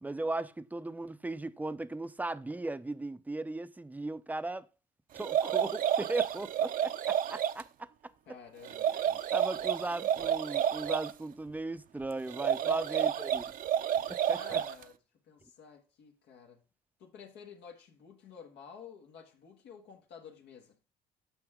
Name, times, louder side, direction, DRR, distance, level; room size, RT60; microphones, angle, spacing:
voice 1, 0.0-4.6 5.1-7.9 9.1-13.4 14.1-14.4, right 2 dB, 10° right, 0.5 m, -37 dB
sound 1, 5.2-7.6 8.6-11.1 12.3-14.8, right 9 dB, 55° right, 0.6 m, -30 dB
voice 2, 8.3-9.1 12.6-13.1 14.3-15.0 15.3-16.6 17.0-20.8, left 6 dB, 85° left, 1.7 m, -52 dB
9.0 x 6.0 x 3.7 m
cardioid pair, 110°, 17 cm